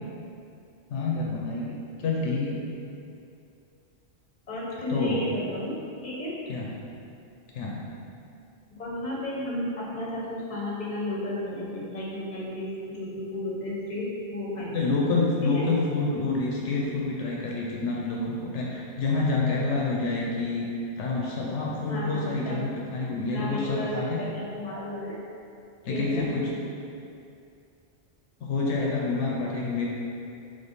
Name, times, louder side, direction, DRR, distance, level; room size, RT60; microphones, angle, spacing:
voice 1, 0.9-1.7 2.0-2.6 4.9-5.4 6.5-6.7 7.5-7.8 14.7-20.7 21.0-24.2 25.8-26.5 28.4-29.9, left 3 dB, 80° left, -3 dB, 0.9 m, -27 dB
voice 2, 4.5-5.7 6.0-6.3 8.8-14.9 15.4-15.7 21.9-22.7 23.3-25.2 25.9-26.3, left 1 dB, 40° left, -6 dB, 1.0 m, -33 dB
3.6 x 3.4 x 4.0 m, 2.5 s
omnidirectional pair, 1.2 m